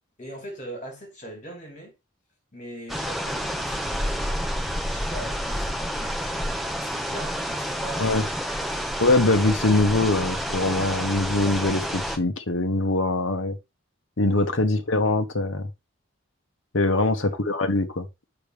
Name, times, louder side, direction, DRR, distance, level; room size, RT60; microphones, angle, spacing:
voice 1, 0.2-1.9 2.5-4.5 4.8-8.9 14.3-14.5 16.9-17.4, equal, 40° left, 4.7 m, -41 dB
sound 1, 2.9-12.2, equal, ahead, 1.0 m, -29 dB
voice 2, 9.0-13.6 14.2-15.7 16.7-18.1, left 2 dB, 65° left, 1.0 m, -23 dB
6.8 x 5.9 x 3.4 m
head